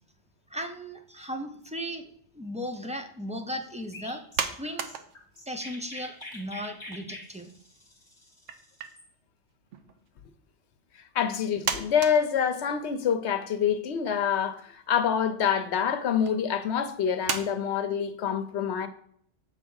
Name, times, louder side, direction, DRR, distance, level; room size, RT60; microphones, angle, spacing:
voice 1, 0.5-4.2 4.6-4.9 5.5-7.5, equal, 10° right, 0.4 m, -36 dB
Chirp tweet, 3.9-9.1, left 2 dB, 25° left, 1.3 m, -45 dB
sound 1, 4.3-5.6 5.9-7.2 7.5-7.6 8.5-8.9 9.7-10.1 10.9-11.0 11.6-13.1 13.6-13.7 14.1-14.7 15.5-15.7 16.3-16.4 17.3-17.4, right 6 dB, 85° right, 1.1 m, -34 dB
voice 2, 11.1-18.9, left 8 dB, 70° left, 0.9 m, -26 dB
7.3 x 3.6 x 6.2 m
omnidirectional pair, 1.2 m